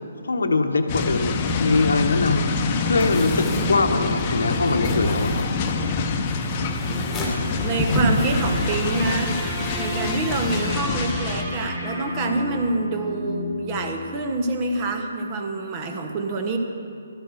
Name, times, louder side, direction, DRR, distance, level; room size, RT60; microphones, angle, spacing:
voice 1, 0.2-2.5 2.9-5.4, left 3 dB, 70° left, 6 dB, 1.0 m, -22 dB
sound 1, 0.9-11.4, left 4 dB, 30° left, 0.9 m, -26 dB
sound 2, 3.0-9.1, left 1 dB, 10° left, 1.8 m, -29 dB
sound 3, 6.2-14.5, left 1 dB, 10° right, 3.5 m, -33 dB
voice 2, 6.7-7.1 7.6-16.6, right 2 dB, 25° right, 3 dB, 1.1 m, -27 dB
12.5 x 8.3 x 6.3 m, 2.7 s
figure-of-eight pair, 135°, 0 cm